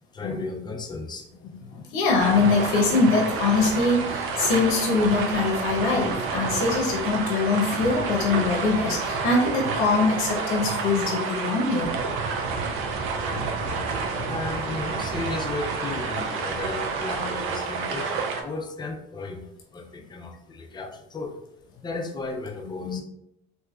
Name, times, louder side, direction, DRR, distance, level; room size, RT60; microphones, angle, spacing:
voice 1, 0.1-1.3 13.2-13.5 14.3-19.5 19.7-21.3 21.8-23.0, left 3 dB, 20° left, 4 dB, 0.5 m, -34 dB
voice 2, 1.7-12.0 22.8-23.0, left 3 dB, 85° left, 0 dB, 0.8 m, -23 dB
sound 1, 2.2-18.4, right 4 dB, 75° right, 0.5 m, -29 dB
3.5 x 2.8 x 2.3 m, 0.79 s
cardioid pair, 110°, 21 cm